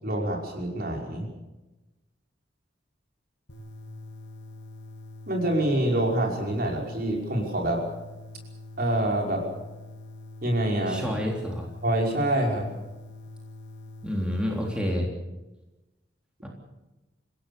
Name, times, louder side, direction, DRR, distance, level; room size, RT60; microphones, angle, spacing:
voice 1, 0.0-1.3 5.3-7.8 8.8-9.5 10.4-11.0 11.8-12.7, right 1 dB, 50° right, 1 dB, 5.6 m, -26 dB
sound 1, 3.5-14.9, left 2 dB, 70° left, 3.3 m, -44 dB
voice 2, 10.9-11.7 14.0-15.1 16.4-16.5, equal, 5° right, -1 dB, 3.6 m, -28 dB
28.5 x 16.5 x 7.0 m, 1.0 s
head